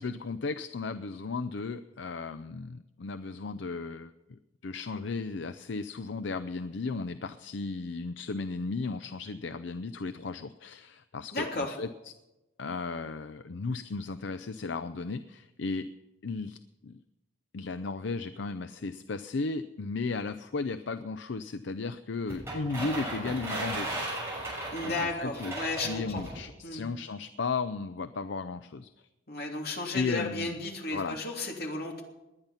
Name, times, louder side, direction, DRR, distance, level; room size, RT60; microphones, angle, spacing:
voice 1, 0.0-4.1 4.6-12.1 12.6-15.9 16.2-17.0 17.5-24.0 24.8-25.5 25.8-28.9 29.9-30.5 30.9-31.2, left 4 dB, 70° left, 11 dB, 0.6 m, -35 dB
voice 2, 11.3-11.7 24.7-26.2 26.6-26.8 29.3-32.0, left 2 dB, 50° left, 0 dB, 3.1 m, -34 dB
sound 1, 22.3-26.4, right 1 dB, 15° right, 7.0 m, -36 dB
19.5 x 10.5 x 5.6 m, 0.97 s
head